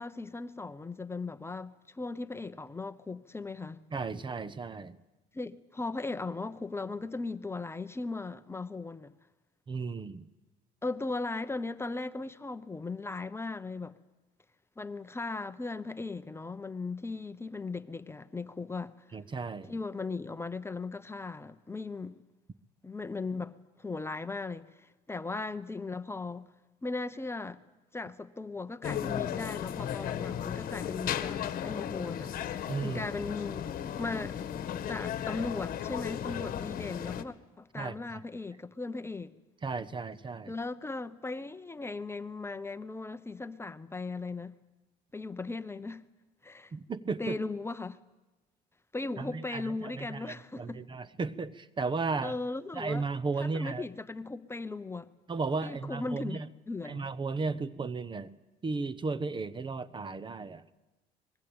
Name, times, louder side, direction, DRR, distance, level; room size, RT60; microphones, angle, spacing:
voice 1, 0.0-3.8 5.3-9.1 10.8-13.9 14.8-18.9 19.7-22.1 22.8-26.5 26.8-27.6 27.9-32.4 32.8-33.7 34.0-34.4 34.9-39.3 40.5-44.5 45.1-46.0 46.4-46.7 47.2-48.0 48.9-50.8 52.2-53.1 53.4-55.1 55.6-57.1, left 3 dB, 15° left, 0.9 m, -37 dB
voice 2, 3.9-5.0 9.7-10.2 19.1-19.7 32.7-33.0 37.8-37.9 39.6-40.5 46.7-47.4 49.2-52.3 52.7-53.9 55.3-56.5 56.8-58.3 58.6-60.6, right 4 dB, 30° right, 0.9 m, -34 dB
sound 1, 28.8-37.2, left 10 dB, 55° left, 1.5 m, -35 dB
24.5 x 21.5 x 8.8 m
cardioid pair, 110°, 17 cm